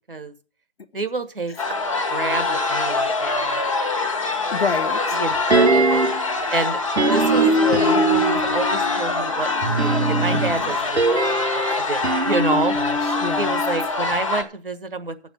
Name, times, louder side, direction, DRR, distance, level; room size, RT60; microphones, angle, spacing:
voice 1, 0.9-1.5 2.1-3.7 5.1-6.0 6.5-6.8 7.1-12.7 13.4-15.1, right 3 dB, 55° right, 1.5 m, -28 dB
sound 1, 1.6-14.4, left 2 dB, 30° left, 1.2 m, -23 dB
voice 2, 4.5-5.2 10.3-10.4 12.3-13.6, left 5 dB, 65° left, 0.9 m, -28 dB
sound 2, 5.5-6.3 7.0-8.6 9.6-13.8 14.1-14.2, right 2 dB, 80° right, 2.1 m, -22 dB
8.6 x 7.1 x 8.3 m
figure-of-eight pair, 175°, 33 cm